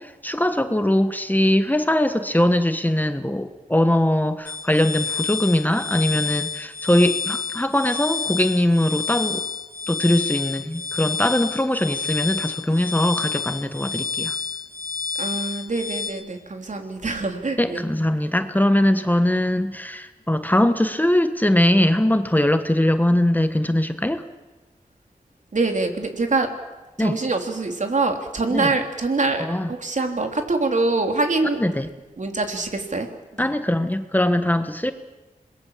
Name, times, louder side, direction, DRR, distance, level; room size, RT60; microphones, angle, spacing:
voice 1, 0.0-9.4 9.9-14.3 17.6-24.2 27.0-27.2 28.5-28.7 29.4-29.7 31.6-31.9 33.4-34.9, left 1 dB, 10° left, 9 dB, 1.4 m, -21 dB
sound 1, 4.5-16.1, left 5 dB, 55° left, 3.7 m, -29 dB
voice 2, 15.2-17.8 25.5-26.5 27.0-31.6 32.2-33.1 33.4-33.5, right 3 dB, 55° right, 4 dB, 3.5 m, -24 dB
27.0 x 21.5 x 7.5 m, 1.2 s
wide cardioid pair, 65°, 15 cm